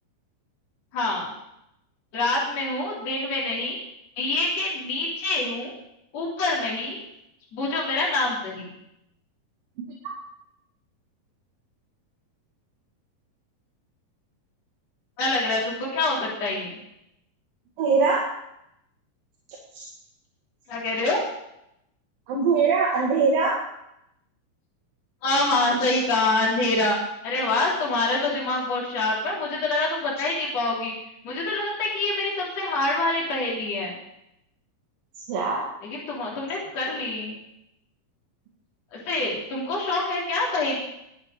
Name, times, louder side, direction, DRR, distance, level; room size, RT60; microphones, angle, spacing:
voice 1, 0.9-1.3 2.1-3.8 4.2-5.7 6.1-7.0 7.5-8.7 15.2-16.7 20.7-21.2 25.2-27.0 27.2-30.9 31.2-34.0 35.8-37.4 38.9-40.8, left 2 dB, 45° left, -4 dB, 4.2 m, -26 dB
voice 2, 17.8-18.3 19.7-19.9 22.3-23.6 35.3-35.7, right 4 dB, 75° right, -2 dB, 3.5 m, -22 dB
20.0 x 8.8 x 4.9 m, 0.82 s
omnidirectional pair, 4.1 m